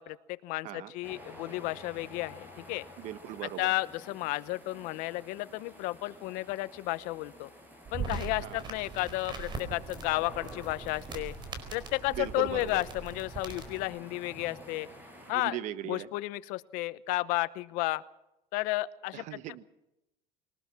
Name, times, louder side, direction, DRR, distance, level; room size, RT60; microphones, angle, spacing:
voice 1, 0.0-2.8 3.6-7.5 7.9-11.3 11.7-14.9 15.3-15.6 15.9-18.0 18.5-19.4, left 19 dB, 75° left, 15 dB, 1.0 m, -33 dB
sound 1, 1.0-15.3, left 1 dB, 15° right, 6.7 m, -51 dB
voice 2, 3.0-3.7 8.4-8.6 12.1-12.8 15.3-16.1 19.1-19.6, right 12 dB, 60° right, 13 dB, 1.2 m, -39 dB
sound 2, 7.8-13.8, right 4 dB, 35° right, 4.5 m, -41 dB
22.5 x 19.5 x 6.1 m, 0.89 s
cardioid pair, 140°, 14 cm